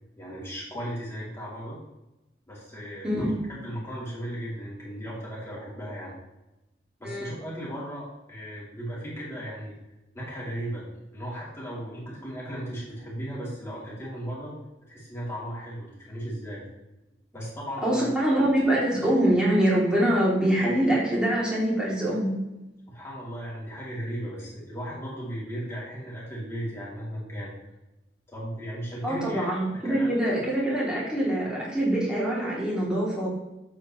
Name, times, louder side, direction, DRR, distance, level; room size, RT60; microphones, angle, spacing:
voice 1, 0.2-1.8 2.5-6.1 7.0-9.7 10.1-10.8 11.1-14.5 14.9-16.6 17.3-18.1 22.9-27.5 28.3-29.5 29.8-30.1, equal, 15° left, -7 dB, 3.1 m, -36 dB
voice 2, 17.8-22.4 29.0-33.3, right 1 dB, 5° right, -7 dB, 3.0 m, -24 dB
8.5 x 7.7 x 3.2 m, 0.96 s
head